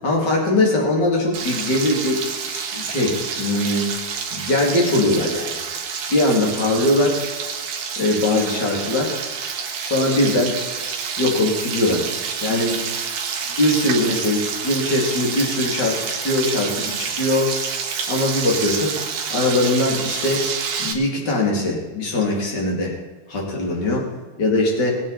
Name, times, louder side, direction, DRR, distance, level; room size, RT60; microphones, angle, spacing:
voice 1, 0.0-2.2 2.5-3.9 4.3-5.6 6.1-7.2 8.0-9.1 9.8-10.6 11.2-12.0 12.4-12.8 13.6-17.5 18.1-18.9 19.3-20.4 20.8-22.9 23.3-24.1 24.4-25.0, left 2 dB, 30° left, -2 dB, 3.3 m, -21 dB
Frying (food), 1.3-20.9, right 6 dB, 65° right, 2.9 m, -28 dB
20.5 x 8.8 x 4.3 m, 1.3 s
omnidirectional pair, 4.5 m